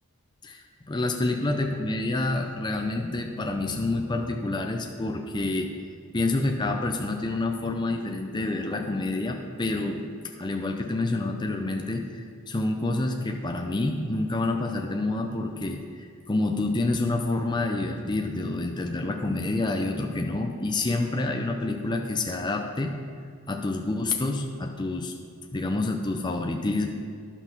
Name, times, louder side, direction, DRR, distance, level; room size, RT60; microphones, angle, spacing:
voice 1, 0.4-5.7 6.1-10.0 10.4-22.9 23.5-25.1 25.5-26.9, left 2 dB, 20° left, 3 dB, 0.5 m, -28 dB
11.0 x 6.0 x 5.8 m, 2.2 s
head